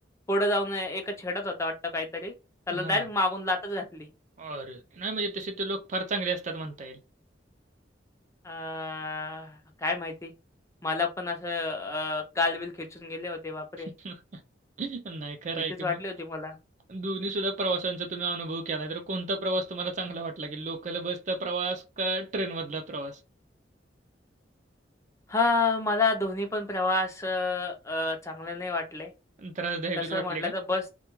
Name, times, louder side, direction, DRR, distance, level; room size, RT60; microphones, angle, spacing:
voice 1, 0.3-2.3 2.7-4.1 8.4-10.3 10.8-13.9 15.5-16.5 25.3-29.1 30.1-30.9, left 2 dB, 15° left, 0.5 m, -29 dB
voice 2, 2.7-3.1 4.4-7.0 14.0-14.2 14.8-16.0 16.9-23.2 29.4-30.5, right 3 dB, 40° right, 0.4 m, -32 dB
2.2 x 2.2 x 3.0 m
head